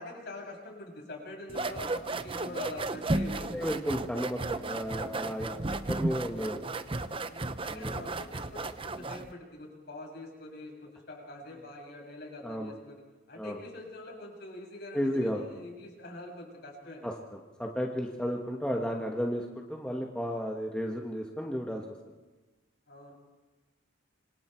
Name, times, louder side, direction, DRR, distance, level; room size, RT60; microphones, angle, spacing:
voice 1, 0.0-3.6 7.3-13.0 13.3-17.1 18.2-18.4 22.9-23.1, left 1 dB, 50° left, 0 dB, 7.3 m, -44 dB
sound 1, 1.5-9.3, right 2 dB, 25° right, 0.8 m, -34 dB
voice 2, 3.5-5.6 5.9-6.6 7.7-8.0 12.4-12.7 13.4-13.6 14.9-15.4 17.0-17.1 17.6-21.8, equal, 5° left, 0 dB, 1.5 m, -33 dB
27.0 x 25.5 x 4.6 m, 1.2 s
head